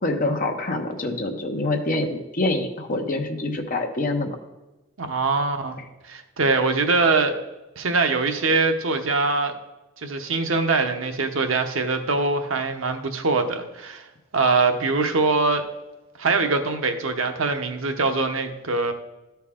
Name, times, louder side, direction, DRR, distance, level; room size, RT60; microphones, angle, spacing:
voice 1, 0.0-4.4, left 2 dB, 40° left, 3 dB, 0.9 m, -25 dB
voice 2, 5.0-5.8 6.1-7.3 7.8-9.5 10.0-14.0 14.3-15.6 16.2-18.9, right 3 dB, 75° right, 6 dB, 0.8 m, -23 dB
12.5 x 4.5 x 3.7 m, 1.0 s
head